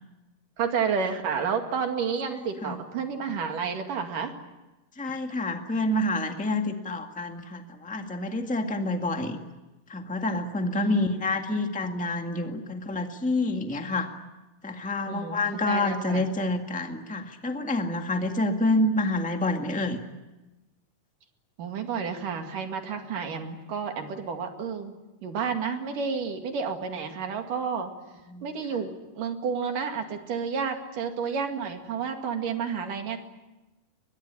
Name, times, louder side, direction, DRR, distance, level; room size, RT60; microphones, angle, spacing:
voice 1, 0.6-4.3 10.7-11.0 11.5-11.6 15.1-16.2 21.6-24.9 25.2-27.9 28.4-33.2, right 6 dB, 75° right, 5 dB, 3.8 m, -30 dB
voice 2, 2.3-2.8 5.0-9.4 9.9-14.1 14.6-20.0 28.3-28.4 28.7-28.8, left 2 dB, 5° left, 4 dB, 0.8 m, -28 dB
23.0 x 21.5 x 10.0 m, 1.1 s
omnidirectional pair, 3.8 m